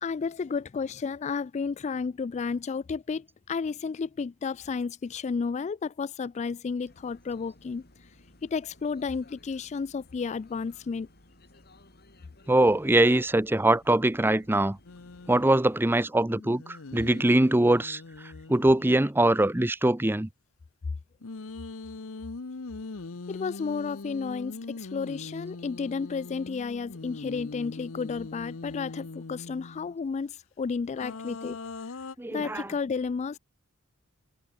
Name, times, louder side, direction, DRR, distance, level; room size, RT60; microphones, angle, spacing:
voice 1, 0.0-7.9 8.4-11.1 23.3-31.6 32.3-33.4, left 5 dB, 30° left, 0.3 m, -32 dB
sound 1, 6.9-16.0, left 1 dB, 50° left, 6.3 m, -57 dB
voice 2, 12.5-14.8 15.3-18.0 18.5-20.3 32.2-32.7, right 1 dB, 10° right, 0.6 m, -22 dB
sound 2, 14.8-15.5 16.3-19.0 21.2-29.9 30.9-32.1, left 3 dB, 65° left, 0.9 m, -41 dB
head